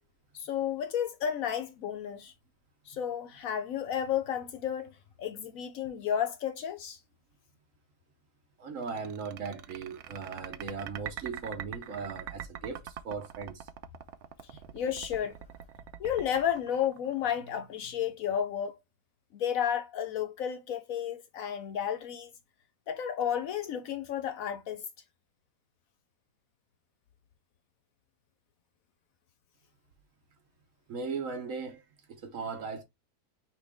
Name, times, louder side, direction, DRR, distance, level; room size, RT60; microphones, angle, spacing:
voice 1, 0.3-2.3 2.9-4.9 5.2-7.0 14.5-15.3 16.0-18.8 19.3-22.3 22.9-24.8, left 9 dB, 65° left, 0.9 m, -32 dB
voice 2, 8.6-13.7 30.9-32.8, right 5 dB, 60° right, 1.0 m, -38 dB
sound 1, 8.8-17.5, right 10 dB, 85° right, 0.6 m, -43 dB
5.7 x 2.5 x 3.4 m
omnidirectional pair, 1.7 m